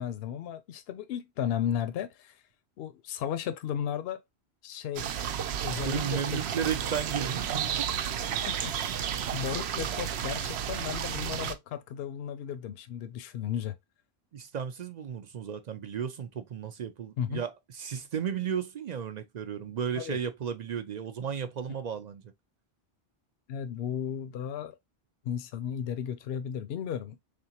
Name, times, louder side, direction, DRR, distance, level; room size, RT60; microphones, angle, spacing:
voice 1, 0.0-2.4 2.8-4.2 4.6-5.1 5.6-6.4 8.5-8.8 9.3-13.7 17.2-17.4 20.0-20.2 23.5-24.8 25.2-27.2, left 9 dB, 70° left, 0.8 m, -34 dB
sound 1, 5.0-11.5, right 8 dB, 80° right, 0.8 m, -32 dB
voice 2, 5.8-7.9 14.3-22.2, right 7 dB, 55° right, 0.5 m, -34 dB
3.7 x 3.4 x 2.8 m
omnidirectional pair, 1.1 m